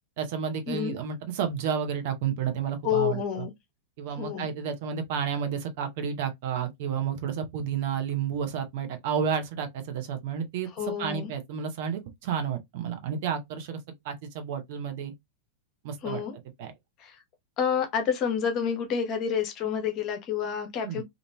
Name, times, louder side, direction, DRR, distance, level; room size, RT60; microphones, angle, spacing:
voice 1, 0.2-3.5 4.0-10.7 11.0-13.8 14.0-15.1 15.8-16.2 16.6-16.7 20.8-21.0, right 7 dB, 50° right, 0.7 m, -31 dB
voice 2, 0.7-1.0 2.8-3.5 4.1-4.5 10.8-11.3 16.0-16.4 17.0-17.2 17.6-21.0, left 8 dB, 35° left, 0.8 m, -29 dB
3.0 x 2.5 x 2.2 m
figure-of-eight pair, 90°, 0 cm